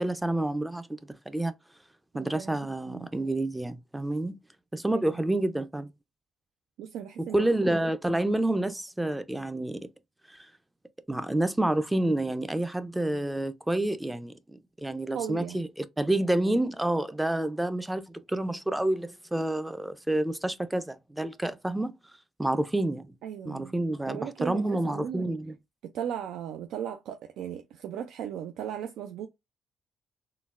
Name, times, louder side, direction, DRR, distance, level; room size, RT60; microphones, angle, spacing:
voice 1, 0.0-1.5 2.1-4.4 4.7-5.9 7.2-9.9 11.1-21.9 22.4-23.1 23.5-25.6, right 1 dB, 10° right, 0.4 m, -29 dB
voice 2, 2.1-2.6 2.9-3.1 4.9-5.1 6.8-7.5 15.1-15.6 23.2-23.8 24.0-25.3 25.8-29.3, right 9 dB, 85° right, 0.3 m, -37 dB
3.8 x 2.1 x 2.4 m
cardioid pair, 90°, 0 cm